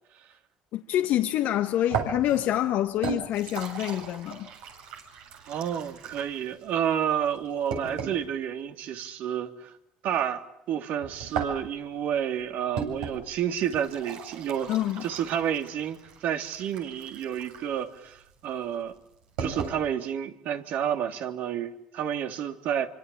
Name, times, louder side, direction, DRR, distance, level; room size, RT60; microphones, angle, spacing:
voice 1, 0.7-4.5 14.7-15.1, left 12 dB, 65° left, 1.4 m, -26 dB
sound 1, 1.9-8.3 11.0-19.8, right 6 dB, 85° right, 7.9 m, -37 dB
voice 2, 5.5-9.7 10.0-10.4 10.7-14.7 15.0-18.9 19.4-22.9, right 9 dB, 65° right, 3.1 m, -30 dB
26.5 x 25.5 x 8.7 m
hypercardioid pair, 70°, 3 cm